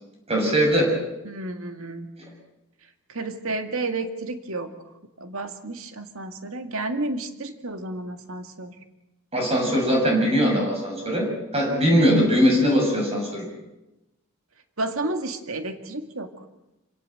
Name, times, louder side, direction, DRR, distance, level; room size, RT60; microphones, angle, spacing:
voice 1, 0.3-0.9 9.3-13.5, equal, 25° right, 1 dB, 6.8 m, -21 dB
voice 2, 1.2-2.1 3.1-4.7 5.2-8.7 14.8-16.3, right 2 dB, 70° right, 7 dB, 2.1 m, -31 dB
27.0 x 17.5 x 7.8 m, 0.95 s
head